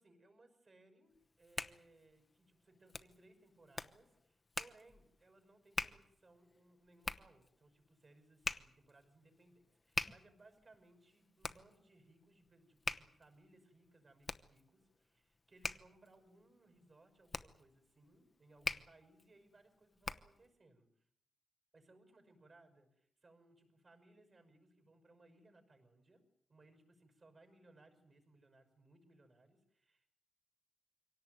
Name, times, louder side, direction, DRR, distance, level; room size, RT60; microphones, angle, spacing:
voice 1, 0.0-21.1 21.7-30.1, right 2 dB, 35° right, 6 dB, 5.8 m, -66 dB
Hands, 1.1-20.5, left 3 dB, 25° left, 1.0 m, -46 dB
24.5 x 17.5 x 9.3 m, 0.71 s
wide cardioid pair, 150°, 0 cm